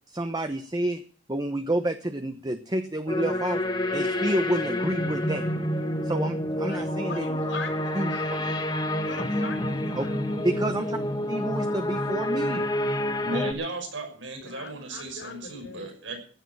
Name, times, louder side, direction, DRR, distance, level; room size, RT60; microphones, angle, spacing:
voice 1, 0.1-1.0 1.3-3.6 3.9-5.5 6.0-7.2 7.9-8.1 10.0-10.1 10.4-11.0 11.3-12.7 13.3-13.4, right 1 dB, 20° right, 7 dB, 0.9 m, -29 dB
sound 1, 3.1-13.5, left 1 dB, 25° left, 1.8 m, -28 dB
voice 2, 6.6-10.2 14.4-15.9, left 4 dB, 70° left, 2 dB, 4.3 m, -41 dB
voice 3, 13.2-16.2, right 2 dB, 90° right, 4 dB, 6.1 m, -36 dB
16.0 x 11.0 x 6.2 m, 0.43 s
head